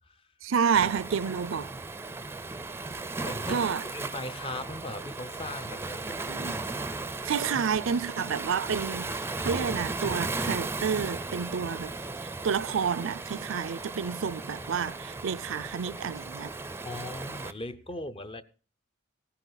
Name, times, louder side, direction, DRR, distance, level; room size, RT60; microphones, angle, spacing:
voice 1, 0.4-1.7 3.5-3.8 6.3-6.6 7.2-9.1 9.4-11.9 12.4-16.5, right 6 dB, 70° right, 0.5 m, -29 dB
Waves surf, 0.7-17.5, right 3 dB, 10° right, 0.5 m, -36 dB
voice 2, 3.2-6.2 16.8-18.4, left 1 dB, 30° left, 0.7 m, -39 dB
16.5 x 9.9 x 3.9 m
head